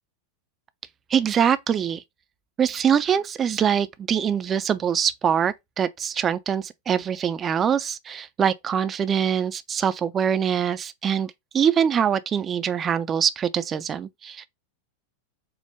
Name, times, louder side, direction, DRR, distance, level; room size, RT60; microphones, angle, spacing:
voice 1, 1.1-2.0 2.6-14.5, right 8 dB, 25° right, 0.4 m, -23 dB
4.6 x 2.1 x 3.3 m
figure-of-eight pair, 90°, 0 cm